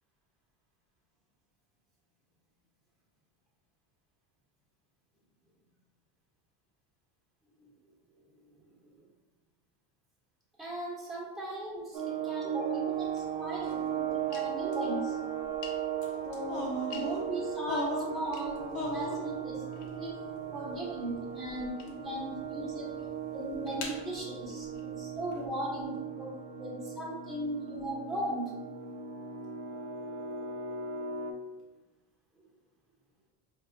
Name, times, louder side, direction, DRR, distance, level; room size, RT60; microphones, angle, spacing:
voice 1, 10.6-15.2 16.2-20.2 20.5-22.9 23.3-28.4, right 1 dB, ahead, -5 dB, 1.1 m, -38 dB
sound 1, 11.9-31.3, right 8 dB, 45° right, 0.8 m, -37 dB
sound 2, 12.9-25.5, left 4 dB, 55° left, 0.8 m, -51 dB
sound 3, 16.5-17.2 17.7-18.2 18.7-19.2, left 1 dB, 30° left, 0.9 m, -34 dB
4.6 x 2.4 x 2.6 m, 1.1 s
supercardioid pair, 100°, 48 cm